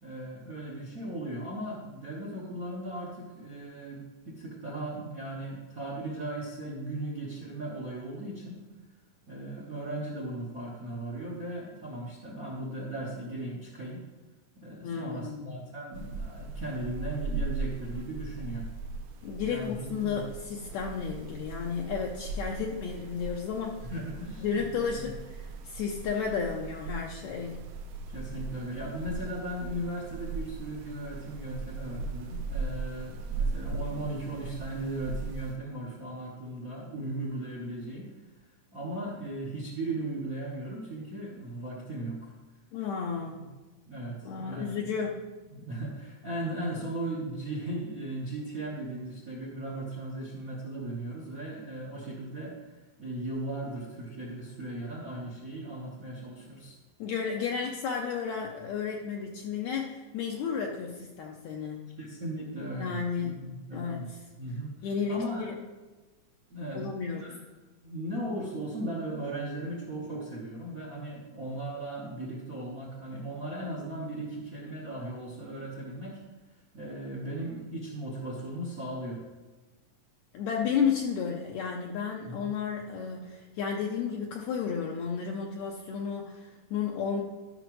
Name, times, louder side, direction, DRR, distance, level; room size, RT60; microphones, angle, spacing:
voice 1, 0.0-8.6 9.3-14.1 14.6-18.7 19.4-20.2 23.8-25.1 28.1-38.1 38.7-42.3 43.1-43.4 43.8-44.9 45.5-52.7 53.0-56.7 62.0-64.1 64.3-65.5 66.5-66.9 67.1-67.4 67.8-76.2 76.7-79.2 82.2-82.4, right 1 dB, 60° right, -4 dB, 0.9 m, -37 dB
voice 2, 14.8-15.5 19.2-23.8 24.4-27.6 42.7-43.5 44.2-45.3 57.0-61.8 62.8-64.2 64.8-65.5 66.7-67.3 80.3-87.2, left 6 dB, 75° left, 0 dB, 1.8 m, -32 dB
sound 1, 15.9-35.6, right 3 dB, 90° right, 2.1 m, -38 dB
13.0 x 5.9 x 3.0 m, 1.2 s
omnidirectional pair, 3.5 m